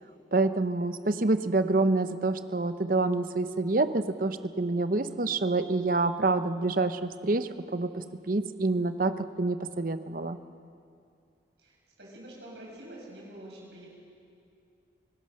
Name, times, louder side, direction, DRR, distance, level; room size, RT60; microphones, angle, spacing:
voice 1, 0.3-10.4, right 3 dB, 50° right, 11 dB, 0.8 m, -27 dB
voice 2, 11.6-13.9, right 1 dB, 70° right, -4 dB, 7.6 m, -46 dB
25.5 x 17.5 x 6.5 m, 2.5 s
head